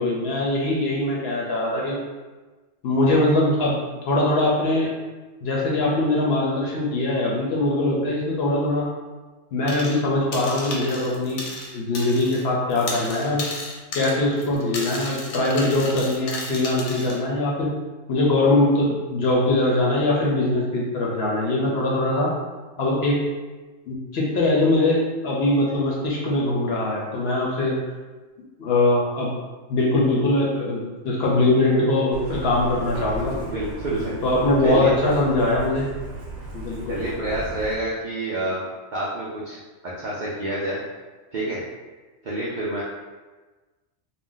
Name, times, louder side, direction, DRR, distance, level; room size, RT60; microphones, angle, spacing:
voice 1, 0.0-2.0 2.8-3.7 4.0-4.9 5.4-8.9 9.5-11.5 11.7-13.4 13.9-17.7 18.1-22.3 22.8-23.2 23.9-27.8 28.6-29.3 29.7-33.3 34.2-35.9 36.5-37.0, left 2 dB, 60° left, -3 dB, 0.7 m, -22 dB
sound 1, 9.7-10.0 10.3-12.4 12.7-17.2, left 2 dB, 85° left, 1.1 m, -34 dB
Truck, 32.1-37.7, right 1 dB, 85° right, 1.1 m, -36 dB
voice 2, 33.2-34.1 34.6-34.9 36.9-38.6 38.9-40.8 41.3-41.6 42.2-42.8, right 1 dB, 70° right, -6 dB, 0.4 m, -28 dB
2.5 x 2.1 x 3.7 m, 1.3 s
omnidirectional pair, 1.4 m